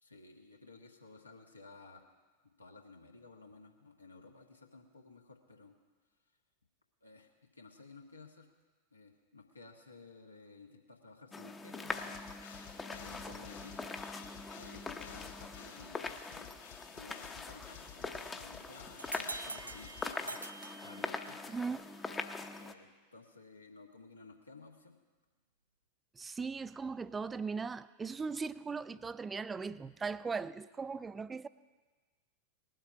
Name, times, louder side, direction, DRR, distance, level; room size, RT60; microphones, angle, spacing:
voice 1, 0.0-2.0 2.4-5.7 7.0-8.5 8.9-12.2 13.0-13.9 14.4-16.5 16.9-20.4 20.8-21.5 22.3-25.0, left 3 dB, 80° left, 1.5 m, -56 dB
sound 1, 11.3-22.7, left 4 dB, 15° left, 0.8 m, -43 dB
sound 2, 11.9-20.7, left 7 dB, 60° left, 2.3 m, -53 dB
sound 3, 19.0-21.6, right 3 dB, 80° right, 0.4 m, -45 dB
voice 2, 21.5-22.1 26.1-31.5, right 5 dB, 15° right, 0.4 m, -39 dB
19.5 x 7.6 x 5.8 m
figure-of-eight pair, 90°, 0 cm